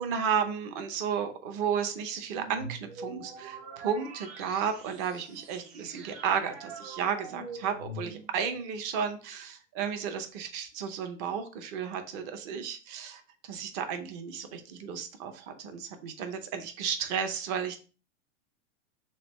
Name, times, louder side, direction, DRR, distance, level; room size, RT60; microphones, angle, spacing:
voice 1, 0.0-13.2 13.5-17.8, right 7 dB, 35° right, 7 dB, 0.6 m, -33 dB
sound 1, 2.2-8.5, right 3 dB, 60° right, 1.0 m, -44 dB
3.6 x 3.3 x 3.0 m, 0.36 s
supercardioid pair, 150°, 36 cm